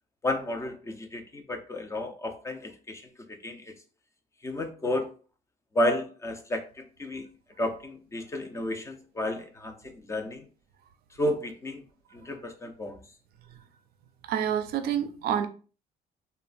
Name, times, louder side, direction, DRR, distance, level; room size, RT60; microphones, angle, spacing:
voice 1, 0.2-3.0 3.4-3.7 4.4-5.1 5.7-7.3 7.6-10.4 11.2-11.8 12.1-13.0, left 1 dB, 15° left, 0.4 m, -32 dB
voice 2, 14.2-15.5, right 9 dB, 65° right, 0.4 m, -28 dB
3.0 x 2.0 x 2.4 m
cardioid pair, 110°, 17 cm